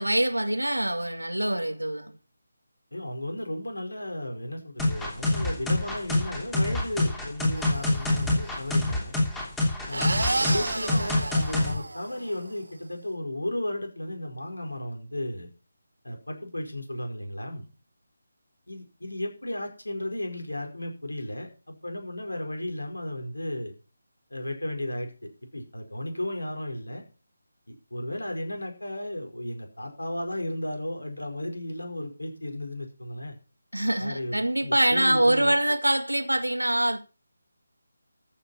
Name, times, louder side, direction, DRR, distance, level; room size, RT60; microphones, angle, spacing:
voice 1, 0.0-2.2 33.7-37.0, right 1 dB, 90° right, 1.9 m, -24 dB
voice 2, 2.9-9.2 9.9-15.5 16.0-17.7 18.7-23.7 24.3-27.0 27.7-33.4 34.0-35.5, left 1 dB, 80° left, 5.2 m, -34 dB
sound 1, 4.8-11.7, left 2 dB, 5° left, 3.1 m, -26 dB
sound 2, 7.6-8.3 9.9-12.5, right 2 dB, 75° right, 1.5 m, -31 dB
14.5 x 7.9 x 5.8 m
figure-of-eight pair, 155°, 0 cm